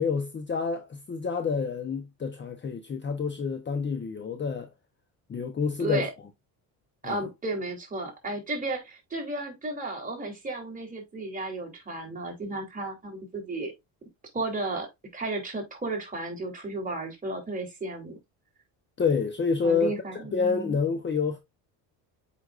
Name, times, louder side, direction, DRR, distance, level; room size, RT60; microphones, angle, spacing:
voice 1, 0.0-4.7 5.3-6.1 7.0-7.3 19.0-21.4, left 5 dB, 25° left, 0.9 m, -28 dB
voice 2, 5.8-6.1 7.0-13.7 14.3-18.2 19.6-20.8, right 2 dB, 20° right, 3.2 m, -33 dB
8.0 x 5.1 x 2.5 m
cardioid pair, 120°, 42 cm